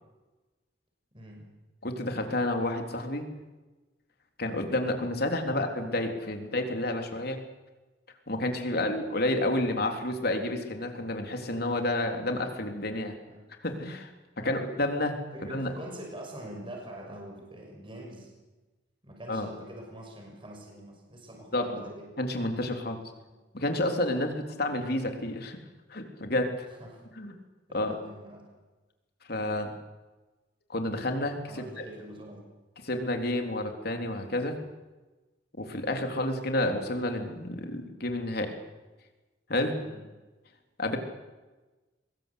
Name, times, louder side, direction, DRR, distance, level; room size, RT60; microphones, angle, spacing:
voice 1, 1.1-1.5 5.5-5.7 8.7-9.0 13.3-13.5 14.4-14.6 15.3-18.3 19.0-22.1 23.3-23.4 24.1-24.3 26.7-27.0 27.7-28.5 31.4-32.4 39.8-40.0, right 1 dB, 30° right, 1 dB, 6.1 m, -45 dB
voice 2, 1.8-3.3 4.4-7.4 8.3-13.2 13.6-14.1 14.4-15.7 19.3-19.5 21.5-21.9 22.2-23.0 23.5-25.6 25.9-26.7 27.2-27.3 27.7-28.0 29.3-29.7 30.7-31.8 32.8-34.6 35.6-38.5 39.5-39.7 40.8-41.0, left 1 dB, 60° left, 4 dB, 3.7 m, -30 dB
24.0 x 21.5 x 8.5 m, 1.2 s
head